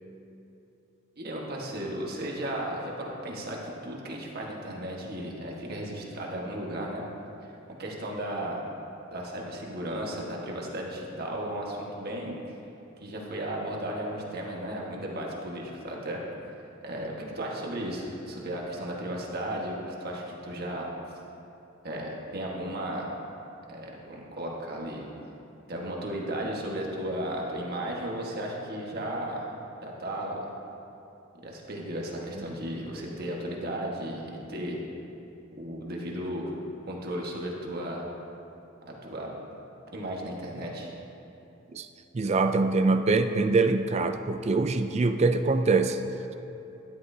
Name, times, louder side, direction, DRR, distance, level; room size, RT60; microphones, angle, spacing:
voice 1, 1.2-7.0 7.8-8.6 9.1-12.3 13.0-16.2 16.8-20.9 21.8-23.1 23.7-25.1 25.7-29.5 29.8-30.5 31.4-34.8 35.6-36.5 36.9-38.1 38.8-39.3 39.9-40.9, right 1 dB, 50° right, -2 dB, 1.5 m, -35 dB
voice 2, 42.1-46.0, right 3 dB, 30° right, 8 dB, 0.4 m, -24 dB
13.5 x 10.5 x 2.8 m, 2.9 s
head